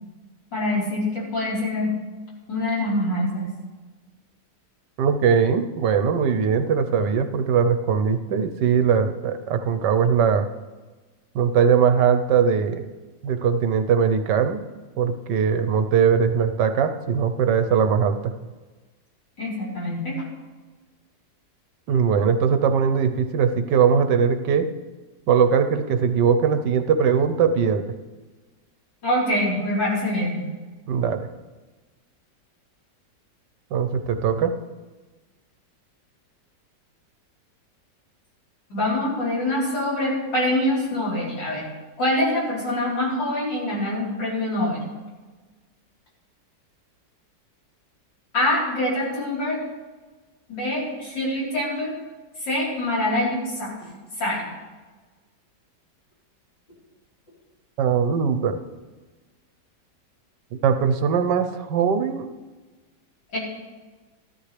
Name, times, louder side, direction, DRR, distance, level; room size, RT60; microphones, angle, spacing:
voice 1, 0.5-2.0 2.5-3.5 19.4-20.2 29.0-30.4 38.7-41.6 42.0-44.8 48.3-49.6 50.5-51.9 52.4-53.7 54.2-54.5 63.3-63.4, left 1 dB, 85° left, -6 dB, 4.8 m, -25 dB
voice 2, 5.0-10.5 11.3-12.9 13.2-14.6 15.0-18.3 21.9-24.7 25.3-27.8 30.9-31.3 33.7-34.5 57.8-58.6 60.6-62.2, right 6 dB, 75° right, 9 dB, 1.4 m, -20 dB
14.0 x 13.0 x 3.3 m, 1.3 s
omnidirectional pair, 1.9 m